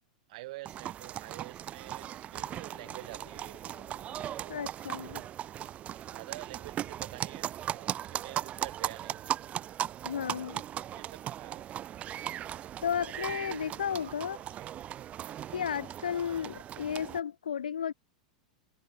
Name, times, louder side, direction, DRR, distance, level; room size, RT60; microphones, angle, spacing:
voice 1, 0.3-3.6 4.4-5.3 6.1-9.3 10.5-10.6 10.9-11.7 13.2-14.1 14.5-14.8 16.3-16.4, right 20 dB, 60° right, 2.0 m, -48 dB
sound 1, 0.7-17.2, right 11 dB, 30° right, 0.6 m, -38 dB
sound 2, 2.1-4.7 5.1-5.2 5.6-5.8 7.0-7.1, left 22 dB, 60° left, 1.8 m, -59 dB
voice 2, 4.5-5.2 10.0-10.6 12.8-14.4 15.5-17.9, left 8 dB, 90° left, 0.4 m, -33 dB
hypercardioid pair, 110°, 4 cm